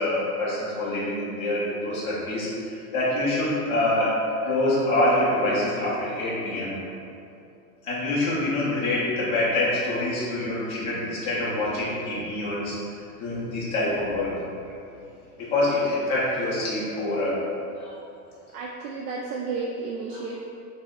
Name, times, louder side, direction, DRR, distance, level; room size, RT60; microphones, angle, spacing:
voice 1, 0.0-4.2 4.4-6.7 7.8-14.3 15.4-17.3 17.7-17.9 20.1-20.2, left 1 dB, 15° left, -8 dB, 0.3 m, -26 dB
voice 2, 18.5-20.4, right 4 dB, 70° right, -2 dB, 0.5 m, -32 dB
3.2 x 2.0 x 3.5 m, 2.6 s
supercardioid pair, 135°, 47 cm